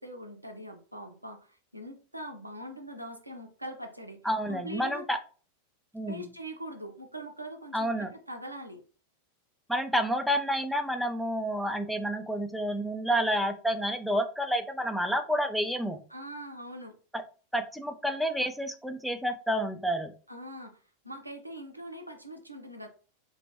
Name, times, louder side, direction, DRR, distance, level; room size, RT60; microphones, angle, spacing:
voice 1, 0.0-5.1 6.1-8.8 16.1-17.0 20.3-22.9, equal, 85° right, 4 dB, 0.4 m, -42 dB
voice 2, 4.2-5.2 5.9-6.3 7.7-8.1 9.7-16.0 17.5-20.1, equal, ahead, 5 dB, 0.3 m, -29 dB
2.3 x 2.1 x 2.7 m, 0.38 s
figure-of-eight pair, 90°, 0 cm